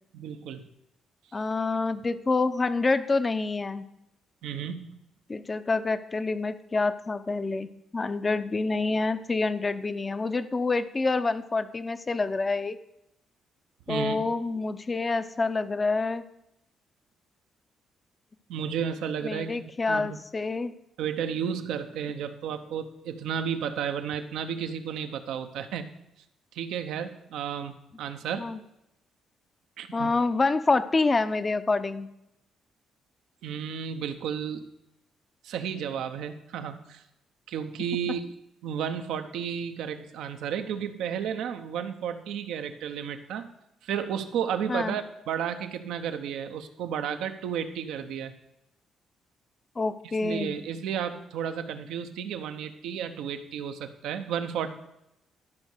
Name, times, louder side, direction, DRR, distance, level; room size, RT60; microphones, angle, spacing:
voice 1, 0.1-0.6 4.4-4.9 13.9-14.3 18.5-20.2 21.0-25.9 26.5-28.5 29.8-30.1 33.4-34.6 35.4-37.0 37.5-38.3 38.6-43.5 43.8-48.3 50.2-54.7, right 8 dB, 80° right, 8 dB, 0.8 m, -32 dB
voice 2, 1.3-3.9 5.3-12.8 13.9-16.2 19.2-20.7 28.4-28.6 29.9-32.1 44.7-45.0 49.8-50.6, left 3 dB, 30° left, 12 dB, 0.7 m, -27 dB
12.5 x 5.3 x 6.6 m, 0.84 s
supercardioid pair, 65°, 0 cm